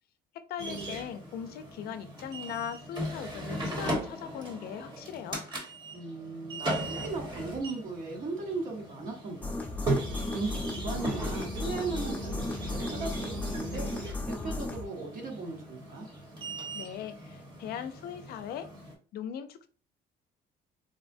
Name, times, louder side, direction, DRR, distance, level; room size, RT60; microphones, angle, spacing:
voice 1, 0.3-5.4 16.7-18.7 19.1-19.7, left 8 dB, 65° left, 0.4 m, -39 dB
sound 1, 0.6-18.9, right 1 dB, 25° right, 1.1 m, -38 dB
voice 2, 5.9-9.8 10.3-13.9 14.3-16.1, right 3 dB, 50° right, 1.0 m, -37 dB
sound 2, 9.4-14.8, left 2 dB, 10° left, 0.7 m, -35 dB
3.9 x 2.1 x 2.6 m
cardioid pair, 110°, 17 cm